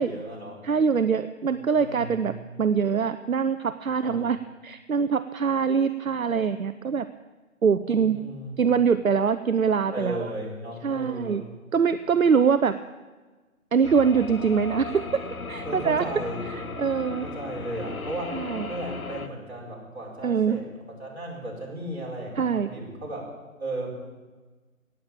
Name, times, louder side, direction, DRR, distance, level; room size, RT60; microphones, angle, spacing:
voice 1, 0.0-0.6 1.4-2.4 4.0-4.2 7.8-8.7 9.9-11.5 15.6-16.5 17.2-18.4 18.7-20.6 21.0-23.2 23.6-24.0, right 1 dB, 50° right, -3 dB, 5.0 m, -35 dB
voice 2, 0.6-4.4 4.6-7.1 7.6-8.2 8.6-10.2 10.8-11.4 11.7-12.7 13.7-15.2 15.5-16.1 16.5-17.3 18.3-18.7 20.2-20.6 22.4-22.7, right 6 dB, 75° right, 12 dB, 0.7 m, -23 dB
sound 1, 13.8-19.3, left 4 dB, 80° left, 1.3 m, -36 dB
18.0 x 7.5 x 8.8 m, 1.3 s
figure-of-eight pair, 180°, 42 cm